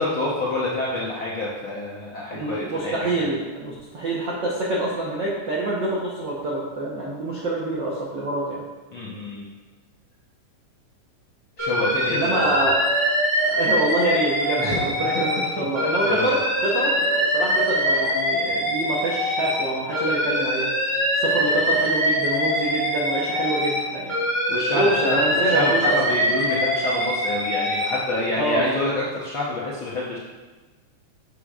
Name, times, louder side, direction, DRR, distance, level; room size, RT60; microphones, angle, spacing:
voice 1, 0.0-3.3 8.9-9.5 11.6-12.6 14.6-15.1 15.6-15.7 16.0-16.3 24.5-30.2, left 2 dB, 65° left, -6 dB, 1.3 m, -27 dB
voice 2, 2.3-8.6 12.1-12.8 13.4-20.7 21.1-24.2 24.7-26.2 28.3-28.7, right 2 dB, 75° right, -4 dB, 1.0 m, -26 dB
Alarm, 11.6-15.5 15.7-19.6 19.9-23.8 24.1-28.0, equal, 10° right, 1.8 m, -23 dB
8.9 x 7.4 x 2.4 m, 1.3 s
omnidirectional pair, 3.5 m